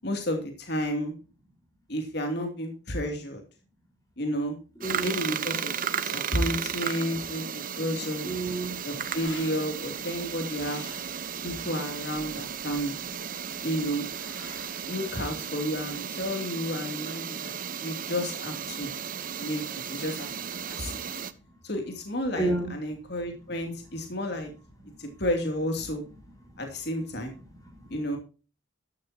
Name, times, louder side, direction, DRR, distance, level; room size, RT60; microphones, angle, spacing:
voice 1, 0.0-1.1 1.9-3.4 4.2-4.6 5.0-5.7 6.0-8.3 8.8-10.8 11.4-13.0 13.6-14.1 14.9-17.5 17.8-18.9 19.4-20.3 20.6-21.0 21.6-24.5 25.0-26.0 26.6-27.3 27.9-28.2, equal, 55° left, 4 dB, 2.7 m, -31 dB
voice 2, 4.8-5.2 8.2-8.8 21.5-21.6 22.3-22.7 23.1-23.2 25.0-25.2 26.4-26.7 27.5-28.0, right 2 dB, 20° left, 2 dB, 4.3 m, -32 dB
sound 1, 4.8-21.3, right 7 dB, 45° right, 0.9 m, -35 dB
sound 2, 8.7-16.0, left 3 dB, 90° left, 5.9 m, -50 dB
13.5 x 12.5 x 2.9 m, 0.34 s
head